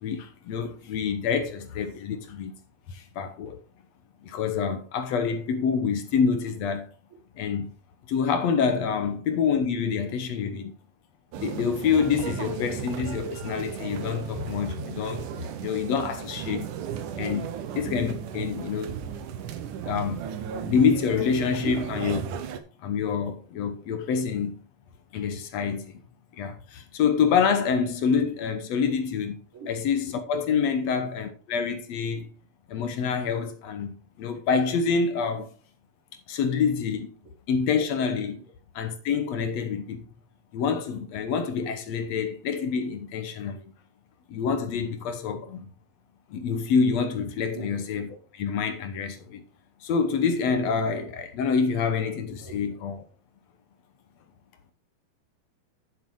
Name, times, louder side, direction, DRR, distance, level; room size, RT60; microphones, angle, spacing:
voice 1, 0.0-2.6 2.9-3.6 4.2-6.9 7.4-7.7 8.1-10.7 11.4-16.7 17.2-17.5 17.7-19.0 19.8-20.2 20.6-22.2 22.8-24.6 25.1-25.9 26.3-29.4 29.7-32.3 32.7-35.5 36.3-37.1 37.5-38.4 38.7-40.0 40.5-43.6 44.3-45.7 46.3-49.4 49.8-53.0, left 6 dB, 70° left, 1.6 m, -27 dB
sound 1, 11.3-22.6, right 8 dB, 70° right, 2.2 m, -35 dB
voice 2, 47.5-47.9 52.4-52.6, right 8 dB, 35° right, 3.7 m, -39 dB
8.7 x 7.5 x 4.7 m
omnidirectional pair, 4.4 m